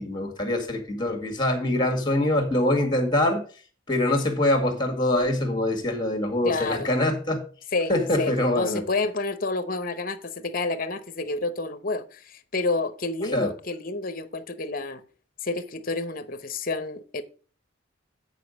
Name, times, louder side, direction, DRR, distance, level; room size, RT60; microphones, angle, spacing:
voice 1, 0.0-3.4 3.9-7.4 7.9-8.8 13.2-13.5, left 1 dB, 20° left, 1.7 m, -24 dB
voice 2, 6.4-7.0 7.7-7.9 8.2-15.0 15.4-17.2, left 3 dB, 45° left, 0.8 m, -29 dB
9.2 x 4.9 x 5.2 m
head